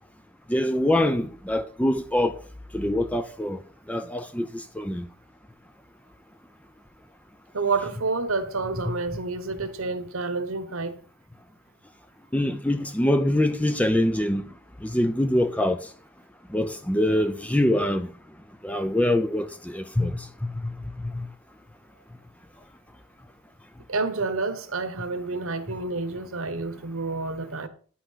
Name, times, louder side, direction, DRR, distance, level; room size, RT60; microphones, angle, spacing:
voice 1, 0.5-2.3 2.7-3.6 3.9-5.1 12.3-14.5 14.8-15.8 16.5-18.1 18.6-20.7 21.1-21.3, left 1 dB, 5° left, 0.5 m, -24 dB
voice 2, 7.5-11.0 23.9-27.7, right 3 dB, 75° right, 1.2 m, -29 dB
10.0 x 5.8 x 5.6 m
head